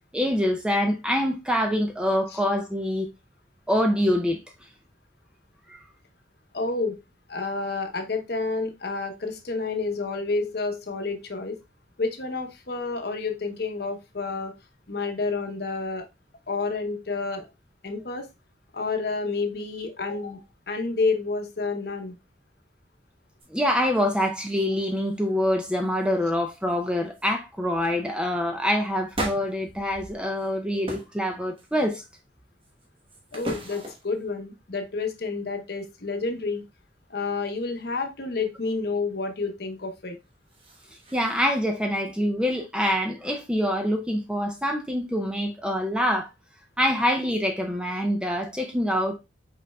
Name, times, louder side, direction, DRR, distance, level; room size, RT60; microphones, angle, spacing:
voice 1, 0.1-3.1 3.7-4.4 5.7-5.8 23.5-32.0 41.1-46.3 46.8-49.2, equal, 5° right, 0.4 m, -25 dB
voice 2, 6.5-7.0 7.3-11.6 12.0-14.5 14.9-16.0 16.5-17.5 17.8-18.3 18.7-20.4 20.7-22.2 33.3-36.6 37.1-40.2, left 3 dB, 55° left, 0.9 m, -29 dB
sound 1, 23.4-23.5 23.8-24.7 24.9-25.3 25.6-26.1 26.7-26.8 27.1-27.3 27.8-28.0 29.1-30.5 30.8-31.2 31.6-32.1 32.6-34.2 40.2-41.6, right 1 dB, 30° right, 1.0 m, -38 dB
5.3 x 4.0 x 2.2 m
head